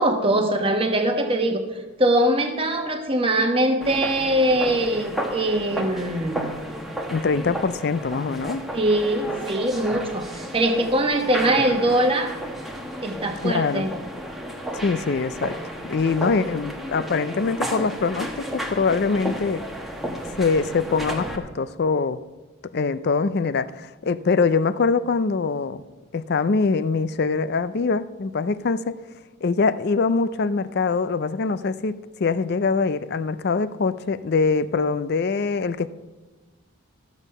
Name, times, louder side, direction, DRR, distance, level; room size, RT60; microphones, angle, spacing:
voice 1, 0.0-1.6 2.0-6.6 8.7-12.3 13.0-13.9, right 1 dB, 25° right, 5 dB, 1.1 m, -22 dB
sound 1, 3.8-21.4, equal, ahead, 1.0 m, -33 dB
voice 2, 7.1-8.6 13.4-13.9 14.7-15.5 15.8-19.6 20.4-22.2 22.7-25.8 26.1-29.0 29.4-35.9, left 4 dB, 45° left, 14 dB, 0.4 m, -23 dB
14.0 x 7.2 x 5.4 m, 1.2 s
head